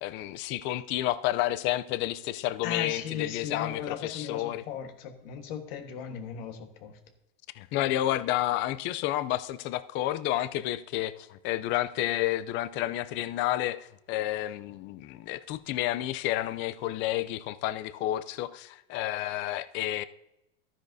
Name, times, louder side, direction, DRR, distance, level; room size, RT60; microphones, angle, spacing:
voice 1, 0.0-4.6 7.6-20.0, left 14 dB, 40° left, 0.5 m, -30 dB
voice 2, 2.6-7.0, left 8 dB, 70° left, 1.5 m, -37 dB
12.5 x 10.0 x 2.7 m
supercardioid pair, 135°, 30 cm